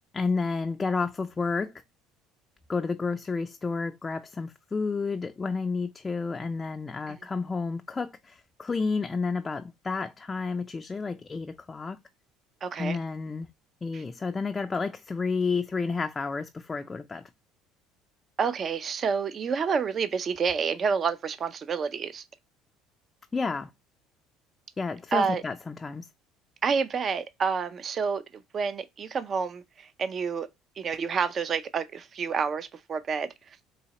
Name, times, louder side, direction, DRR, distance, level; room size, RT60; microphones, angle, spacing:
voice 1, 0.1-1.7 2.7-12.0 12.8-13.5 13.8-17.2 23.3-23.7 24.8-26.1, left 4 dB, 25° left, 0.3 m, -31 dB
voice 2, 12.6-13.0 13.9-14.0 18.4-22.2 25.1-25.4 26.6-30.5 30.8-33.6, right 6 dB, 40° right, 0.4 m, -29 dB
4.1 x 2.8 x 2.8 m
supercardioid pair, 90°, 0 cm